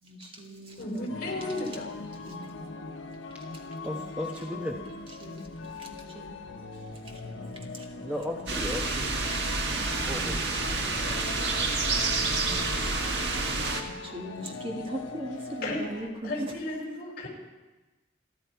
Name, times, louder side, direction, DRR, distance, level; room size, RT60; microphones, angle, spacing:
voice 1, 0.0-1.8 2.3-2.5 3.9-4.1 4.5-4.9 5.2-5.5 5.8-6.3 7.1-8.0 8.3-8.5 9.3-9.9 10.8-11.1 11.6-12.9 13.1-13.4 13.9-16.5, right 1 dB, 30° right, 0 dB, 1.9 m, -41 dB
voice 2, 0.8-1.9 15.6-17.3, left 1 dB, 50° left, -2 dB, 5.1 m, -34 dB
sound 1, 1.1-16.1, left 3 dB, 85° left, 1.0 m, -41 dB
voice 3, 3.8-4.8 8.0-9.1 10.1-11.0, left 1 dB, 10° right, 1 dB, 1.0 m, -36 dB
sound 2, 8.5-13.8, right 3 dB, 65° right, 1.6 m, -28 dB
29.5 x 10.0 x 4.7 m, 1.2 s
head